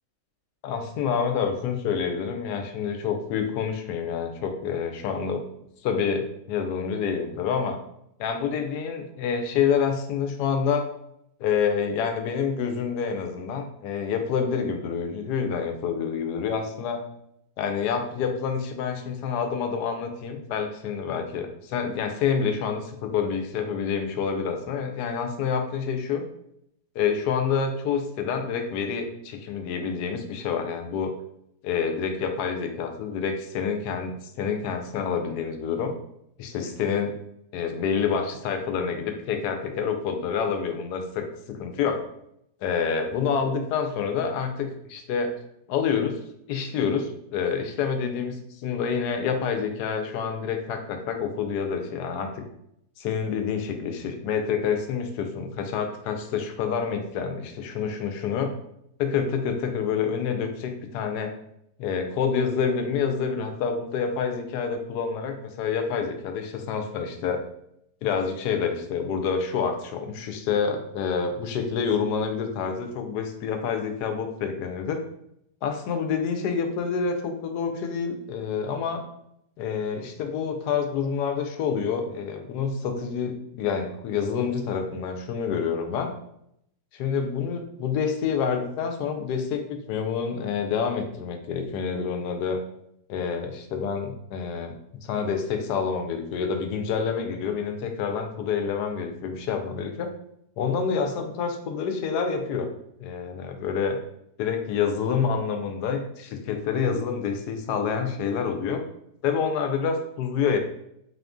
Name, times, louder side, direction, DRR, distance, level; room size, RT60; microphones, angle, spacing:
voice 1, 0.6-5.4 5.8-7.8 8.2-10.9 11.4-17.0 17.6-26.2 26.9-31.1 31.6-35.9 36.4-37.1 37.5-42.0 42.6-45.3 45.7-46.2 46.5-48.4 48.6-52.4 53.0-58.5 59.0-61.3 61.8-67.4 68.0-75.0 75.6-79.0 79.6-86.1 86.9-92.6 93.1-94.7 95.0-100.1 100.6-102.7 103.0-104.0 104.4-108.8 109.2-110.6, left 6 dB, 90° left, 5 dB, 1.2 m, -27 dB
4.2 x 2.5 x 3.5 m, 0.76 s
omnidirectional pair, 1.7 m